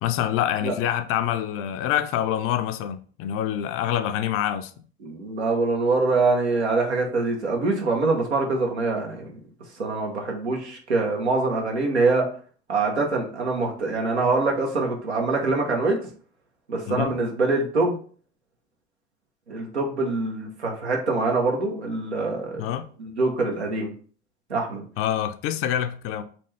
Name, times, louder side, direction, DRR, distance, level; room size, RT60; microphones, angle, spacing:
voice 1, 0.0-4.7 16.9-17.2 22.6-22.9 25.0-26.2, left 11 dB, 45° left, 0.5 m, -26 dB
voice 2, 5.0-9.4 9.8-12.3 12.7-16.0 16.7-18.0 19.5-22.7 23.0-23.9 24.5-24.8, right 3 dB, 85° right, 1.0 m, -24 dB
4.3 x 3.0 x 3.2 m
figure-of-eight pair, 65°, 32 cm